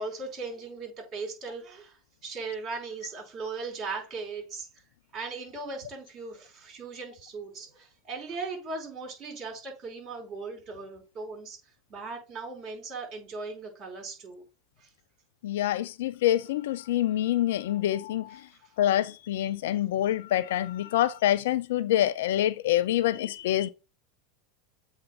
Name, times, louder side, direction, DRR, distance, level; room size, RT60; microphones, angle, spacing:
voice 1, 0.0-1.9 2.2-4.7 5.1-11.6 11.9-14.4 14.8-14.9, right 4 dB, 45° right, 4.6 m, -38 dB
voice 2, 15.4-18.4 18.8-23.7, left 12 dB, 70° left, 0.5 m, -26 dB
8.0 x 3.0 x 5.3 m
hypercardioid pair, 95°, 0 cm